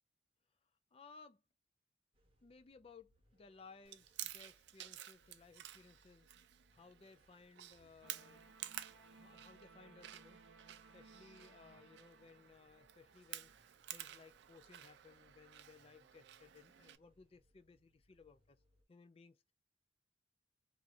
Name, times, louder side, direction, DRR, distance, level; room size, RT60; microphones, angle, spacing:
voice 1, 0.9-1.4 2.4-6.3 6.7-10.4 10.9-13.5 13.9-18.6 18.9-19.5, left 4 dB, 30° left, 0.3 m, -61 dB
sound 1, 2.1-18.8, equal, 30° right, 0.8 m, -75 dB
Chewing mastication, 3.8-17.0, right 13 dB, 60° right, 0.3 m, -53 dB
sound 2, 8.0-14.1, right 4 dB, 80° right, 0.7 m, -63 dB
3.0 x 2.4 x 2.5 m
head